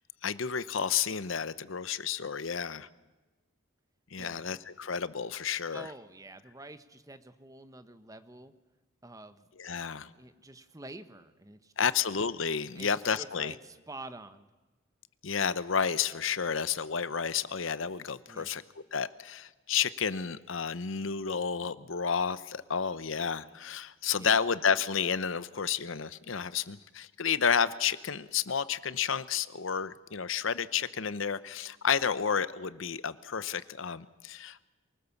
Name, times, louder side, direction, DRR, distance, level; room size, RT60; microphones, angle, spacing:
voice 1, 0.2-2.9 4.1-5.9 9.6-10.1 11.8-13.5 15.2-18.6 18.9-34.7, left 7 dB, 70° left, 16 dB, 0.8 m, -31 dB
voice 2, 5.7-8.5 9.0-11.7 12.8-12.9 13.2-14.5 18.3-18.5 24.2-24.4, right 2 dB, 15° right, 11 dB, 1.0 m, -48 dB
24.0 x 18.5 x 7.2 m, 1.2 s
head